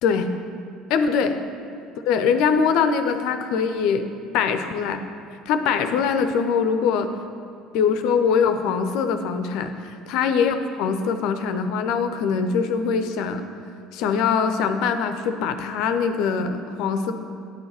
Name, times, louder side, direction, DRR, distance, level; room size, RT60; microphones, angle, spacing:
voice 1, 0.9-1.4 2.1-4.1 4.3-5.0 5.5-7.1 7.7-9.7 10.1-13.4 13.9-17.1, left 6 dB, 60° left, 8 dB, 0.6 m, -22 dB
10.5 x 4.6 x 6.9 m, 2.5 s
figure-of-eight pair, 60°, 0 cm